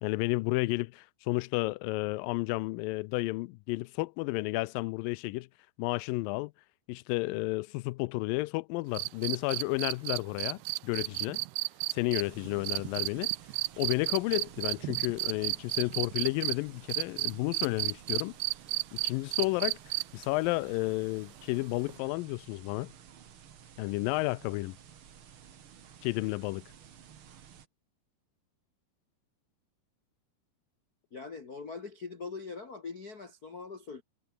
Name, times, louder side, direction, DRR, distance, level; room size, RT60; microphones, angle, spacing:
voice 1, 0.0-5.5 5.8-6.5 6.9-11.4 11.9-13.3 13.8-18.4 18.9-22.9 23.8-24.8 26.0-26.6, left 22 dB, 90° left, 2.0 m, -32 dB
sound 1, 9.0-16.6 16.9-20.3 21.9-22.0, right 22 dB, 85° right, 2.6 m, -32 dB
sound 2, 12.2-27.7, right 8 dB, 50° right, 1.6 m, -54 dB
voice 2, 31.1-34.0, left 4 dB, 60° left, 0.9 m, -42 dB
omnidirectional pair, 4.6 m